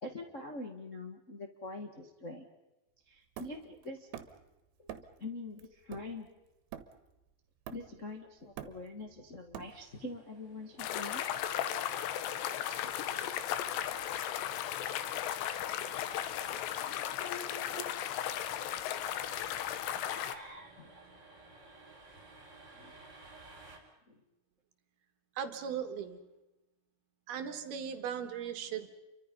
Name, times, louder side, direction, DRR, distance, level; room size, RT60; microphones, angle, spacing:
voice 1, 0.0-2.4 3.1-4.1 4.8-4.9 5.2-6.3 7.7-11.2 12.8-13.3 17.1-17.5 19.9-21.0 22.7-22.9 24.1-24.2, left 2 dB, 50° left, 2 dB, 0.8 m, -45 dB
Hammer, 3.4-4.5 4.9-5.2 5.6-7.2 7.7-8.1 8.4-10.1, right 10 dB, 85° right, 3.5 m, -47 dB
sound 1, 9.6-23.8, right 3 dB, 25° right, 4.6 m, -58 dB
sound 2, 10.8-20.4, left 11 dB, 90° left, 3.3 m, -36 dB
voice 2, 25.4-26.2 27.3-28.9, right 8 dB, 70° right, 8 dB, 3.5 m, -38 dB
29.5 x 24.0 x 5.5 m, 0.99 s
omnidirectional pair, 4.8 m